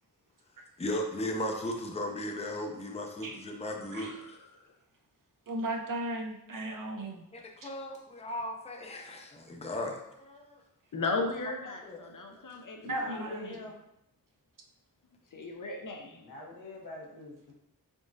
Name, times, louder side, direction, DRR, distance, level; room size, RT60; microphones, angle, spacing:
voice 1, 0.8-4.4 7.3-10.6 11.8-12.0, left 1 dB, 15° left, 2 dB, 0.5 m, -36 dB
voice 2, 3.9-4.7 10.9-13.6 15.3-16.2, left 3 dB, 55° left, 3 dB, 0.7 m, -37 dB
voice 3, 5.5-7.2 7.6-7.7 12.8-13.5, right 1 dB, 60° right, 2 dB, 0.7 m, -36 dB
voice 4, 12.8-13.8 16.2-17.5, left 1 dB, 70° left, -2 dB, 1.1 m, -45 dB
3.7 x 3.6 x 2.6 m, 0.81 s
wide cardioid pair, 65°, 37 cm